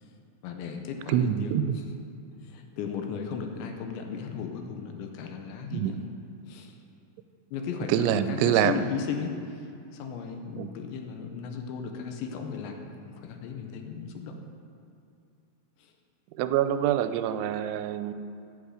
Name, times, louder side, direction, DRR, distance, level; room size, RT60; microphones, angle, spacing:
voice 1, 0.4-1.9 2.4-6.1 6.5-6.8 7.5-14.3 15.8-15.9, left 6 dB, 80° left, 4 dB, 3.1 m, -36 dB
voice 2, 1.1-1.8 5.7-5.9 7.9-8.8 10.6-10.8 16.4-18.1, right 10 dB, 85° right, 11 dB, 2.9 m, -25 dB
16.5 x 8.3 x 4.9 m, 2.5 s
omnidirectional pair, 5.3 m